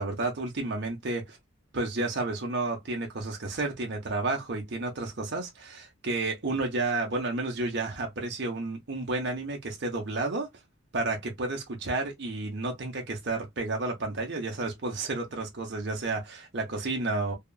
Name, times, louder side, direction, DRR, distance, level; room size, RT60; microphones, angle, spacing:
voice 1, 0.0-1.4 1.7-10.5 10.9-17.3, right 2 dB, 55° right, 0.8 m, -31 dB
2.8 x 2.4 x 2.3 m
head